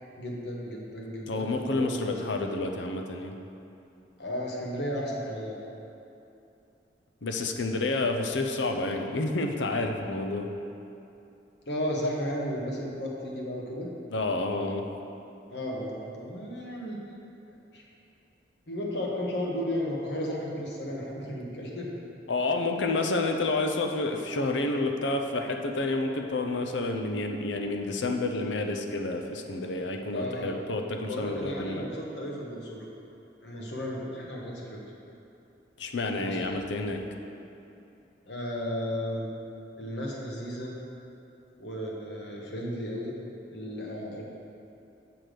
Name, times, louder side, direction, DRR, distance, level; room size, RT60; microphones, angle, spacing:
voice 1, 0.2-2.2 2.5-2.6 4.2-5.7 11.7-13.9 15.5-17.0 17.7-17.8 18.7-21.9 30.1-30.5 31.1-32.9 33.4-34.8 36.2-36.6 38.3-39.3 39.8-40.7 41.6-43.1 43.5-44.2, equal, 65° left, -2 dB, 1.4 m, -34 dB
voice 2, 1.3-3.4 7.2-10.5 14.1-14.9 22.3-31.8 35.8-37.0, left 2 dB, 85° left, 4 dB, 0.7 m, -29 dB
7.7 x 5.9 x 5.1 m, 2.8 s
head